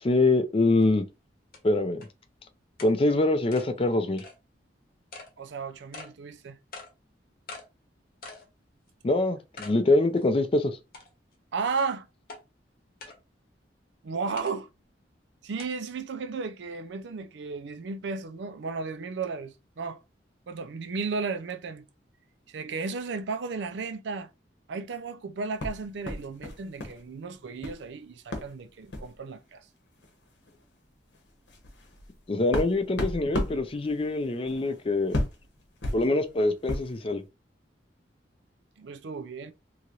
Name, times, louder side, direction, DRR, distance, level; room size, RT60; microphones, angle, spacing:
voice 1, 0.0-1.0 1.6-2.0 2.8-4.2 9.0-10.8 32.3-35.2 35.9-37.2, left 2 dB, 30° left, 0.4 m, -24 dB
sound 1, 0.8-0.9 1.5-1.6 2.0-2.1 2.8-2.9 3.5-3.7 4.2-4.4 5.1-5.3 5.9-6.1 6.7-6.9 7.5-7.7 8.2-8.5 8.9-9.0 9.6-9.8 10.2-10.3 10.9-11.3 12.3-12.4 13.0-13.2 14.4-14.5 15.6-15.7, left 3 dB, 55° left, 0.9 m, -43 dB
voice 2, 5.4-6.6 11.5-12.1 14.0-14.7 15.4-20.0 20.5-21.9 22.5-24.3 24.7-29.6 38.8-39.5, right 4 dB, 75° right, 0.4 m, -34 dB
sound 2, 25.6-27.0 27.3-27.8 28.3-28.5 28.9-29.1 30.0-30.1 30.5-30.6 31.1-37.0, left 1 dB, 80° left, 0.9 m, -34 dB
2.8 x 2.5 x 2.9 m
head